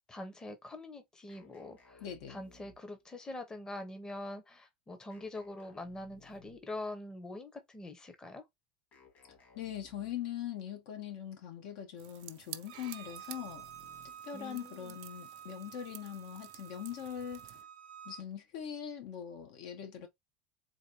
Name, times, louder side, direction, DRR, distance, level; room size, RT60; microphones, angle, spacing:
voice 1, 0.1-8.4 14.3-15.0, left 2 dB, 15° left, 0.8 m, -44 dB
sound 1, 1.3-3.1 5.1-6.8 8.9-10.4 12.7-14.3, left 3 dB, 45° left, 2.0 m, -61 dB
voice 2, 2.0-2.4 9.5-13.7 14.2-17.5 18.0-20.1, left 10 dB, 70° left, 1.0 m, -42 dB
sound 2, 12.0-17.6, right 17 dB, 65° right, 0.4 m, -52 dB
Bowed string instrument, 12.7-18.2, right 10 dB, 90° right, 0.7 m, -51 dB
4.0 x 2.5 x 2.9 m
supercardioid pair, 115°, 4 cm